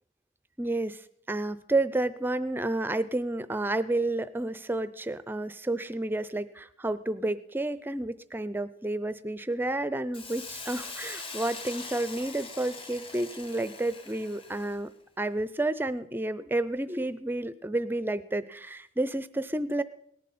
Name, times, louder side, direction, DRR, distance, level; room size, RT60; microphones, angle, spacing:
voice 1, 0.6-14.9 15.2-19.8, right 2 dB, 10° right, 14 dB, 0.4 m, -30 dB
Hiss, 10.1-14.9, left 4 dB, 30° left, 1.0 m, -42 dB
18.0 x 11.0 x 4.2 m, 0.72 s
head